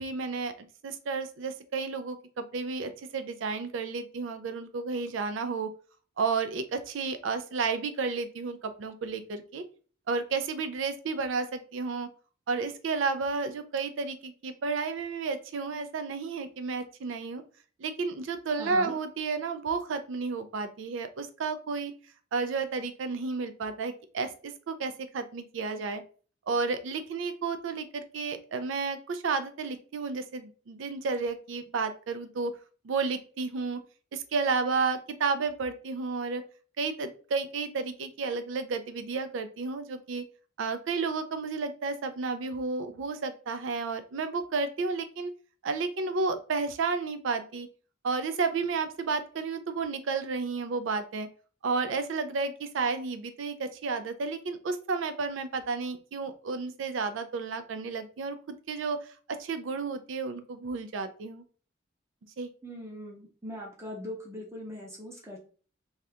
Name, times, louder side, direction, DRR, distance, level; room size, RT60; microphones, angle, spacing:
voice 1, 0.0-5.7 6.2-9.6 10.1-12.1 12.5-17.4 17.8-21.9 22.3-26.0 26.5-32.5 32.8-33.8 34.1-36.4 36.8-40.2 40.6-45.3 45.6-47.7 48.0-51.3 51.6-61.4 62.4-62.5, right 4 dB, 75° right, 9 dB, 0.4 m, -32 dB
voice 2, 18.6-18.9 62.6-65.4, left 1 dB, 15° right, -2 dB, 0.7 m, -40 dB
2.7 x 2.3 x 3.3 m, 0.40 s
head